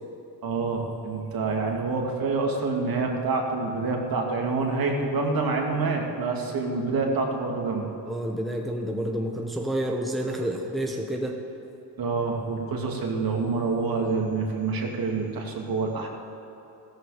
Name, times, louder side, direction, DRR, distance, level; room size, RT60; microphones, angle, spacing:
voice 1, 0.4-7.9 12.0-16.1, right 3 dB, 50° right, 1 dB, 2.5 m, -27 dB
voice 2, 8.1-11.3, right 1 dB, ahead, 1 dB, 1.1 m, -29 dB
14.5 x 14.0 x 5.0 m, 3.0 s
cardioid pair, 110°, 45 cm